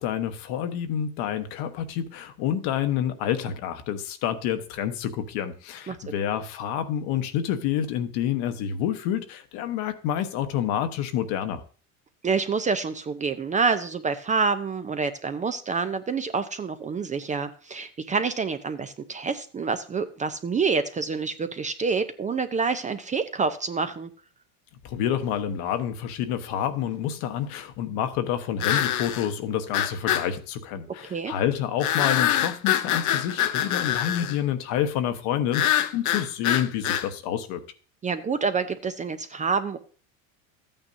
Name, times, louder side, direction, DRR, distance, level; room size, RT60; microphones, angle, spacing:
voice 1, 0.0-11.6 24.8-37.6, left 10 dB, 60° left, 1.2 m, -28 dB
voice 2, 12.2-24.1 31.0-31.3 38.0-39.8, right 5 dB, 20° right, 0.5 m, -27 dB
sound 1, 24.9-25.0 28.6-29.3 29.7-30.3 31.8-34.4 35.5-37.1, left 11 dB, 45° left, 0.8 m, -25 dB
13.5 x 8.9 x 2.7 m
supercardioid pair, 110°, 43 cm